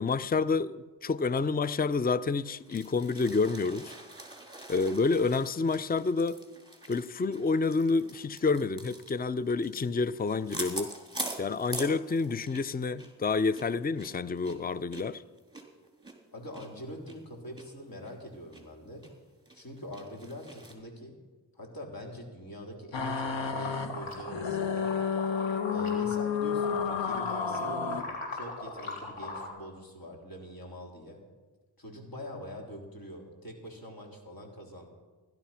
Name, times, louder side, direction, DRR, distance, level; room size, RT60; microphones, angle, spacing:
voice 1, 0.0-3.9 4.7-6.4 6.9-10.9 11.4-15.2, left 4 dB, 20° left, 0.6 m, -28 dB
sound 1, 2.4-12.7 13.0-13.1 13.5-16.7 17.1-17.2 17.6-17.7 18.0-18.6 19.0-19.1 19.5-20.7, right 1 dB, 10° right, 3.8 m, -43 dB
voice 2, 16.3-19.1 19.5-21.2 21.5-24.9 25.7-31.2 31.8-34.9, equal, 50° left, 4.0 m, -44 dB
sound 2, 22.9-28.0, left 6 dB, 70° left, 1.5 m, -31 dB
sound 3, 23.0-26.3 26.6-29.5, left 2 dB, 85° left, 3.7 m, -39 dB
16.5 x 12.0 x 5.8 m
cardioid pair, 45°, 46 cm